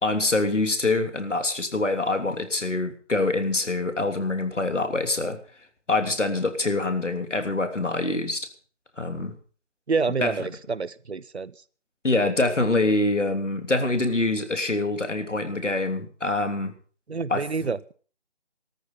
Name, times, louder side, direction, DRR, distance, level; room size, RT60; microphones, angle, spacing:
voice 1, 0.0-5.4 5.9-8.5 9.0-9.3 10.2-10.3 12.0-16.7 17.3-17.7, left 2 dB, 85° left, 7 dB, 3.2 m, -25 dB
voice 2, 9.9-11.5 17.1-17.9, right 4 dB, 65° right, 20 dB, 0.8 m, -28 dB
14.5 x 13.5 x 5.8 m, 0.41 s
figure-of-eight pair, 175°, 36 cm